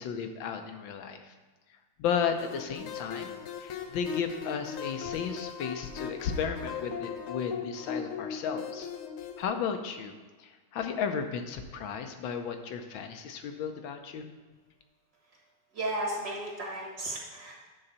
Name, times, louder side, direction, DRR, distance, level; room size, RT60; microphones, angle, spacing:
voice 1, 0.0-1.3 2.0-8.9 9.4-10.1 10.4-14.3, left 7 dB, 70° left, 6 dB, 1.4 m, -34 dB
sound 1, 2.4-9.4, left 7 dB, 90° left, 1.6 m, -39 dB
voice 2, 15.7-17.5, right 1 dB, 50° right, -2 dB, 2.0 m, -34 dB
9.8 x 3.9 x 6.7 m, 1.4 s
omnidirectional pair, 2.3 m